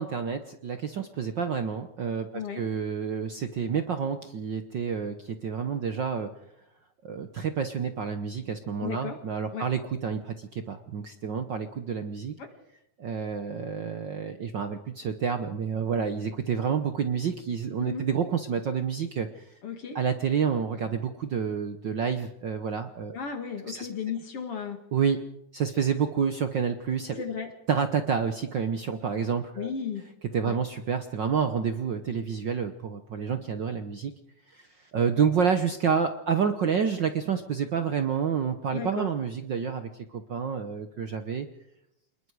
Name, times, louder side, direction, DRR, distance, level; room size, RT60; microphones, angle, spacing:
voice 1, 0.0-6.3 7.0-12.3 13.0-19.5 19.9-23.2 23.7-23.9 24.9-25.2 25.5-27.2 27.7-29.7 30.3-34.1 34.5-41.5, right 6 dB, 75° right, 8 dB, 1.0 m, -29 dB
voice 2, 8.8-9.2 9.5-9.7 12.4-12.5 17.8-18.0 19.6-20.0 23.1-24.8 27.2-27.5 29.6-30.0 30.4-30.6 38.7-39.1, left 7 dB, 50° left, 6 dB, 2.9 m, -34 dB
27.5 x 21.0 x 4.8 m, 0.80 s
omnidirectional pair, 3.5 m